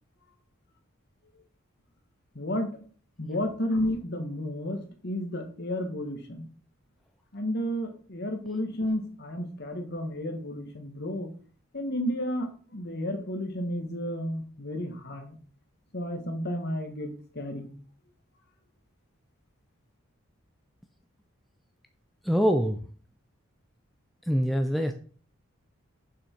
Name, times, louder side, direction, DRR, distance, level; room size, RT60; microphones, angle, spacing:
voice 1, 2.3-2.8 3.2-6.5 7.3-11.3 11.7-15.4 15.9-17.7, left 1 dB, 50° left, 5 dB, 1.6 m, -32 dB
voice 2, 22.2-22.8 24.3-24.9, equal, ahead, 5 dB, 0.5 m, -24 dB
7.0 x 6.1 x 4.5 m, 0.43 s
head